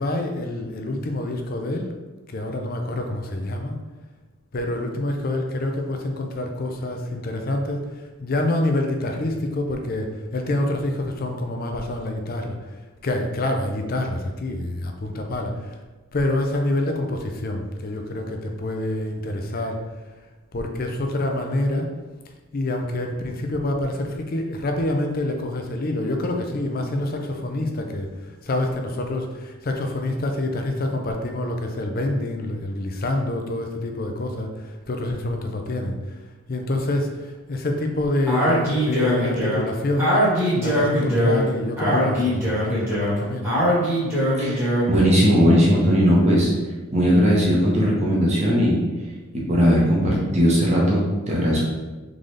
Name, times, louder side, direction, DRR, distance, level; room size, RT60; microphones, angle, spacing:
voice 1, 0.0-1.9 2.3-3.8 4.5-7.8 8.2-12.5 13.0-15.8 16.1-19.8 20.5-21.9 22.5-28.1 28.4-36.0 36.5-40.2 40.6-43.5, left 1 dB, 40° left, 4 dB, 0.5 m, -26 dB
Speech, 38.3-45.0, equal, 10° right, 1.4 m, -22 dB
voice 2, 44.4-46.5 46.9-48.8 49.5-51.6, equal, 30° right, -4 dB, 1.1 m, -18 dB
3.9 x 3.8 x 3.3 m, 1.2 s
head